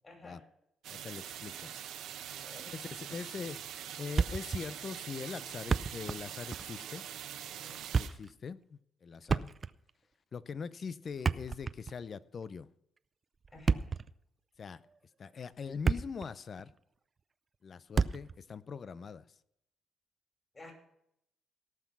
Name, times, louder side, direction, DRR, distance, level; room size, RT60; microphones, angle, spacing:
voice 1, 0.0-0.4 2.4-2.7 7.5-7.8 13.5-13.9 20.5-20.7, left 2 dB, 30° left, 2 dB, 5.3 m, -52 dB
sound 1, 0.8-8.1, right 10 dB, 85° right, 1.1 m, -44 dB
voice 2, 0.9-1.7 2.7-7.1 8.0-9.5 10.3-12.7 14.6-14.8 15.2-16.7 17.6-19.2, left 6 dB, 45° left, 17 dB, 0.5 m, -42 dB
Thump thud, 4.2-4.7 4.9-5.0 5.5-6.2 6.5-6.7 7.7-8.3 9.2-9.9 11.1-12.0 13.4-14.1 14.8-15.0 15.5-16.3 16.6-16.7 17.9-18.4, right 5 dB, 35° right, 0.4 m, -31 dB
17.5 x 6.0 x 6.0 m, 0.76 s
cardioid pair, 90°, 0 cm